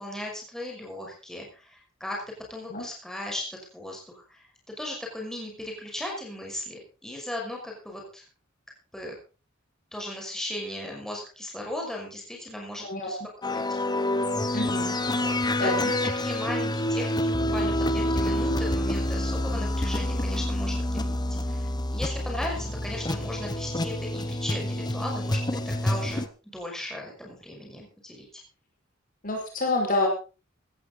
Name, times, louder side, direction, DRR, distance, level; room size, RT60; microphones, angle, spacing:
voice 1, 0.0-2.2 2.5-8.2 8.9-9.2 9.9-13.2 13.4-13.6 15.1-25.4 25.7-28.3, left 1 dB, 5° left, -1 dB, 5.9 m, -37 dB
voice 2, 12.8-13.3 14.5-15.0 15.6-15.9 29.2-30.1, left 2 dB, 45° left, 2 dB, 5.3 m, -28 dB
sound 1, 13.4-26.3, left 1 dB, 20° left, 1.0 m, -27 dB
16.5 x 14.0 x 4.0 m, 0.33 s
head